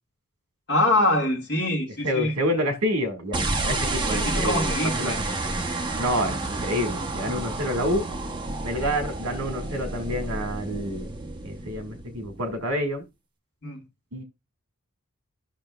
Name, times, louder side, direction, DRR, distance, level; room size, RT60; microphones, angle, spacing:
voice 1, 0.7-2.4 4.1-5.2 13.6-13.8, left 1 dB, 50° left, 1.9 m, -24 dB
voice 2, 2.0-5.2 6.0-8.1 8.6-11.1 11.4-13.0 14.1-14.2, equal, 70° right, 1.8 m, -28 dB
sound 1, 3.3-12.7, right 2 dB, 20° right, 0.8 m, -30 dB
13.5 x 5.8 x 2.3 m
head